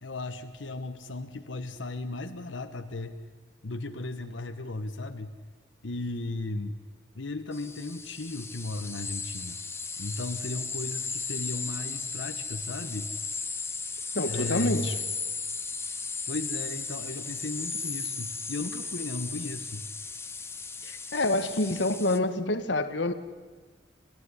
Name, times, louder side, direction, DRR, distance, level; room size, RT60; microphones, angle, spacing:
voice 1, 0.0-3.2 3.6-5.3 5.8-6.8 7.1-9.6 10.0-13.1 14.3-14.9 16.3-19.8, left 2 dB, 85° left, 7 dB, 1.3 m, -36 dB
sound 1, 7.5-22.2, left 4 dB, 15° left, 1.1 m, -36 dB
voice 2, 14.1-15.0 20.8-23.1, left 2 dB, 70° left, 9 dB, 1.3 m, -27 dB
30.0 x 14.5 x 9.8 m, 1.4 s
head